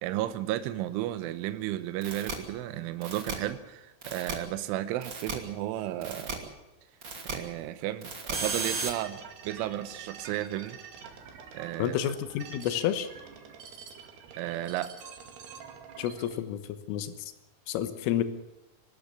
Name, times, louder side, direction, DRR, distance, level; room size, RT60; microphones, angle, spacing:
voice 1, 0.0-6.5 7.3-10.8 11.5-12.0 14.4-14.9, right 13 dB, 80° right, 11 dB, 3.3 m, -33 dB
sound 1, 2.0-2.3 3.0-3.3 4.0-4.3 5.0-5.3 6.0-6.3 7.0-7.3 8.0-8.9, right 4 dB, 30° right, 2.2 m, -34 dB
sound 2, 8.4-16.4, right 6 dB, 60° right, 3.7 m, -47 dB
voice 2, 11.8-13.1 16.0-17.3 17.7-18.2, left 10 dB, 80° left, 11 dB, 3.8 m, -30 dB
24.0 x 13.0 x 9.8 m, 0.93 s
omnidirectional pair, 5.8 m